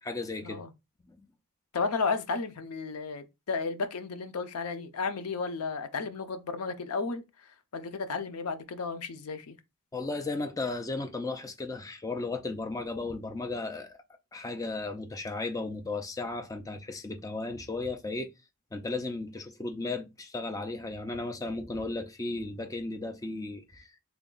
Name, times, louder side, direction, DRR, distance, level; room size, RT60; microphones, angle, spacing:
voice 1, 0.0-0.6 1.1-1.2 9.9-14.0 14.3-18.3 18.7-24.0, left 3 dB, 15° left, 0.4 m, -35 dB
voice 2, 1.7-7.2 7.7-9.6, left 4 dB, 85° left, 0.6 m, -33 dB
3.5 x 2.2 x 3.8 m
head